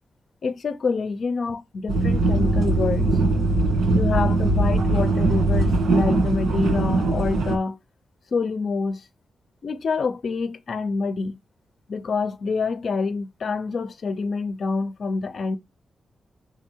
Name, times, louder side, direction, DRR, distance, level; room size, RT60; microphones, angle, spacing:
voice 1, 0.4-3.2 3.9-7.8 8.3-9.0 9.6-11.4 11.9-15.6, left 4 dB, 60° left, 0.8 m, -26 dB
sound 1, 1.9-7.6, right 2 dB, 85° right, 1.8 m, -21 dB
5.7 x 3.7 x 4.5 m
cardioid pair, 100°, 0 cm